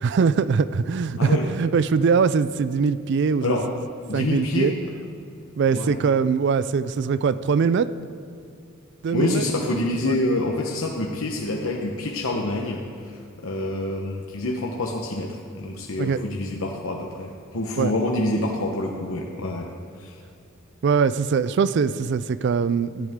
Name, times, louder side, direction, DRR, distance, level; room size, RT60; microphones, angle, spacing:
voice 1, 0.0-3.6 4.1-4.7 5.6-7.9 9.0-9.4 10.1-10.2 16.0-16.2 17.8-17.9 20.8-23.1, right 5 dB, 55° right, 15 dB, 0.3 m, -22 dB
voice 2, 4.1-4.9 5.7-6.0 9.1-19.7 20.0-20.2, left 2 dB, 70° left, -1 dB, 1.0 m, -27 dB
17.0 x 11.5 x 3.6 m, 2.4 s
head